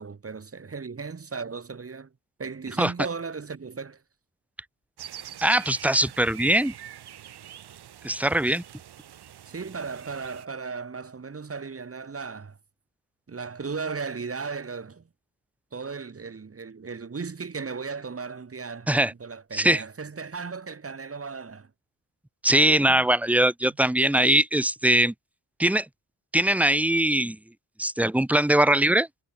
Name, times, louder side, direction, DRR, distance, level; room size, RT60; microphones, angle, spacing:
voice 1, 0.0-2.1 2.4-4.0 9.5-12.6 13.3-15.0 15.7-21.7 22.9-23.0, right 5 dB, 35° right, 2.8 m, -36 dB
sound 1, 5.0-10.5, right 10 dB, 80° right, 1.6 m, -44 dB
voice 2, 5.4-6.7 8.0-8.6 18.9-19.1 19.5-19.8 22.4-25.1 25.6-25.9 26.3-27.4 27.8-29.1, right 1 dB, 5° right, 0.8 m, -21 dB
wide cardioid pair, 110°, 39 cm